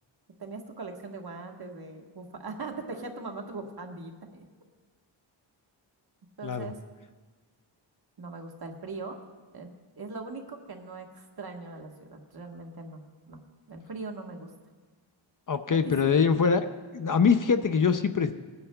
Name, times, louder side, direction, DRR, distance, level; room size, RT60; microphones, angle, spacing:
voice 1, 0.4-4.5 6.4-6.7 8.2-9.2 9.5-9.7 10.0-13.0 13.3-13.4 13.7-14.5 15.7-16.2, right 3 dB, 50° right, 2 dB, 1.4 m, -40 dB
voice 2, 6.4-6.7 15.5-16.6 16.9-18.3, left 6 dB, 45° left, 10 dB, 0.5 m, -23 dB
21.0 x 9.6 x 2.3 m, 1.4 s
wide cardioid pair, 90°, 46 cm